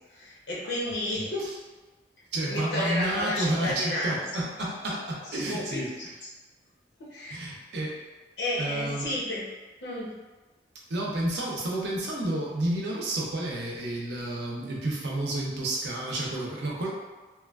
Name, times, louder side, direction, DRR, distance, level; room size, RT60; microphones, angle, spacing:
voice 1, 0.0-1.4 2.5-4.2 5.3-6.1 7.0-7.4 8.4-9.5 9.8-10.2, left 1 dB, 85° left, -5 dB, 0.7 m, -32 dB
voice 2, 2.3-5.9 7.3-8.0 8.6-9.1 10.9-16.9, right 1 dB, 75° right, -3 dB, 0.6 m, -30 dB
3.1 x 2.3 x 2.3 m, 1.3 s
head